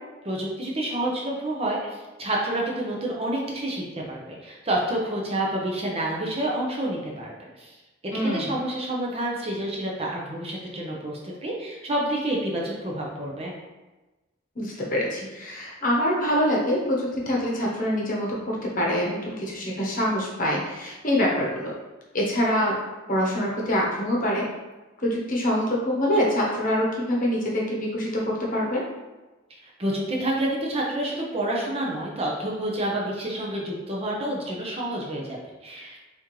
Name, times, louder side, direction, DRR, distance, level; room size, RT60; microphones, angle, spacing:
voice 1, 0.2-7.7 8.2-13.5 29.5-36.0, right 1 dB, 30° right, -2 dB, 0.7 m, -29 dB
voice 2, 8.1-8.6 14.6-21.7 22.1-22.7 23.1-24.4 25.0-28.8, equal, 40° left, -3 dB, 1.0 m, -25 dB
4.2 x 3.7 x 3.1 m, 1.2 s
head